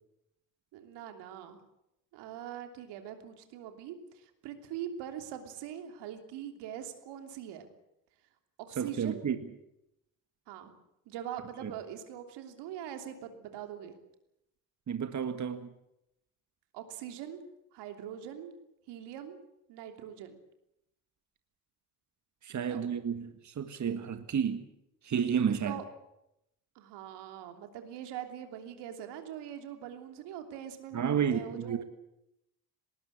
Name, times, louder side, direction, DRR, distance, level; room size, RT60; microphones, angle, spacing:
voice 1, 0.7-1.6 2.1-7.7 8.7-9.3 10.5-10.7 11.1-14.0 16.7-17.5 17.7-18.6 18.9-19.4 19.7-20.4 22.5-23.0 25.5-25.8 26.7-31.8, right 10 dB, 80° right, 3.1 m, -43 dB
voice 2, 8.8-9.4 11.6-11.7 14.9-15.7 22.4-24.6 25.0-25.8 30.9-31.8, right 7 dB, 45° right, 1.8 m, -31 dB
19.5 x 19.0 x 8.6 m
supercardioid pair, 70°, 41 cm